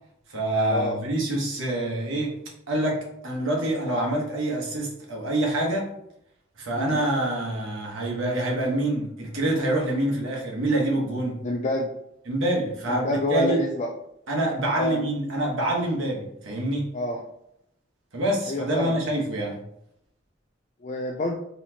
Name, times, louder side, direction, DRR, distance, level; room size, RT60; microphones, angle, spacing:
voice 1, 0.3-2.4 2.7-5.9 6.6-11.4 12.3-13.6 14.3-16.9 18.1-19.6, right 1 dB, 90° right, -1 dB, 1.1 m, -26 dB
voice 2, 11.4-11.9 12.9-13.9 14.8-15.1 16.9-17.2 18.5-19.0 20.8-21.4, left 1 dB, 35° left, 0 dB, 0.4 m, -27 dB
4.1 x 3.0 x 2.8 m, 0.77 s
head